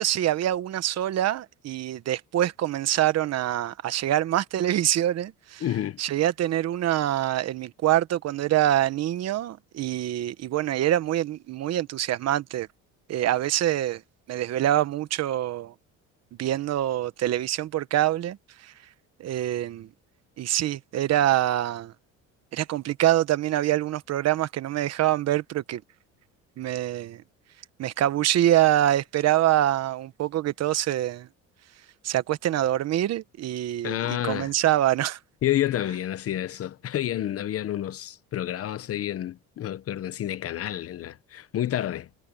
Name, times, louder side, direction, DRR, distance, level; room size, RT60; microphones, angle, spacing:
voice 1, 0.0-5.6 6.0-12.7 13.1-14.0 14.3-15.7 16.4-18.4 18.6-18.7 19.2-19.9 20.4-21.9 22.5-25.8 26.6-27.2 27.8-31.3 32.0-35.2, right 13 dB, 50° right, 1.1 m, -25 dB
voice 2, 5.6-6.0 33.8-34.5 35.4-42.1, left 12 dB, 45° left, 1.1 m, -29 dB
cardioid pair, 140°, 32 cm